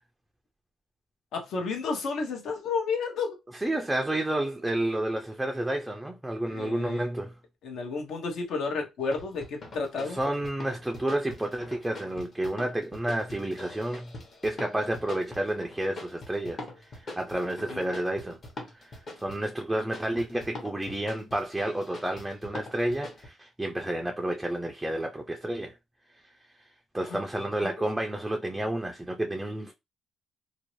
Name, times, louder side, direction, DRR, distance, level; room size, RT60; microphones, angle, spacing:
voice 1, 1.3-3.4 6.5-7.1 7.6-10.2 17.7-17.8 27.0-27.2 27.6-27.7, left 4 dB, 75° left, 0.8 m, -31 dB
voice 2, 3.5-7.3 10.0-14.1 14.4-18.4 18.7-25.7 26.9-29.7, right 1 dB, 10° right, 0.4 m, -30 dB
sound 1, 9.0-23.3, left 2 dB, 45° left, 1.0 m, -43 dB
2.5 x 2.0 x 3.0 m
cardioid pair, 90°, 0 cm